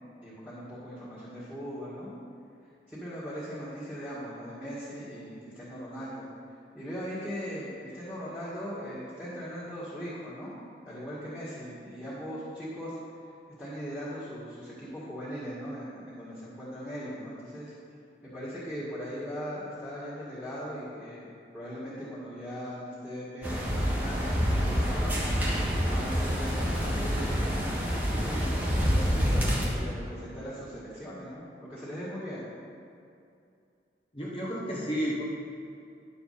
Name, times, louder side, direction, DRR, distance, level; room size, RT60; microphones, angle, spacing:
voice 1, 0.2-2.1 2.9-6.3 6.7-10.5 10.9-12.9 13.6-17.7 18.2-21.3 21.5-25.2 25.6-32.4, equal, 5° left, -11 dB, 2.1 m, -39 dB
sound 1, 23.4-29.7, equal, 10° right, 1.3 m, -27 dB
voice 2, 34.1-35.2, equal, 30° left, -5 dB, 1.3 m, -31 dB
11.0 x 7.1 x 4.3 m, 2.5 s
head